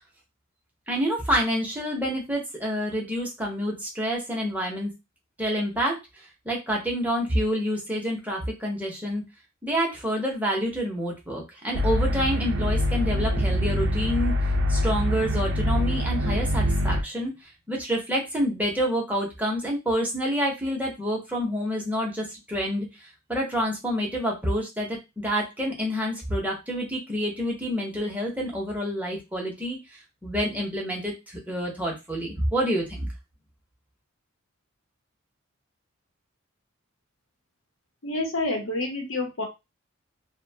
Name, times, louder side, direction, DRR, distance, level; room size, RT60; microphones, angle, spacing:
voice 1, 0.9-4.9 5.4-6.0 6.4-9.2 9.6-14.3 14.7-17.3 17.7-22.9 23.3-29.8 30.2-33.1, equal, 10° right, -2 dB, 0.8 m, -28 dB
sound 1, 11.7-17.0, equal, 60° right, 0.5 m, -24 dB
voice 2, 38.0-39.4, left 2 dB, 70° left, 2 dB, 0.9 m, -28 dB
2.7 x 2.2 x 2.7 m, 0.24 s
head